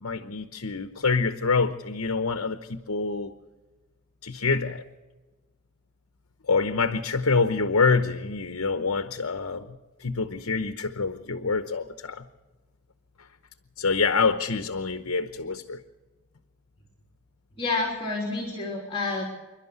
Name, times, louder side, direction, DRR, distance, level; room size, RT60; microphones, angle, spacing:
voice 1, 0.0-3.3 4.2-4.8 6.5-9.7 10.0-12.2 13.8-15.8, left 4 dB, 70° left, 8 dB, 0.9 m, -26 dB
voice 2, 17.6-19.3, left 3 dB, 25° left, -1 dB, 3.4 m, -29 dB
27.5 x 12.0 x 8.0 m, 1.2 s
head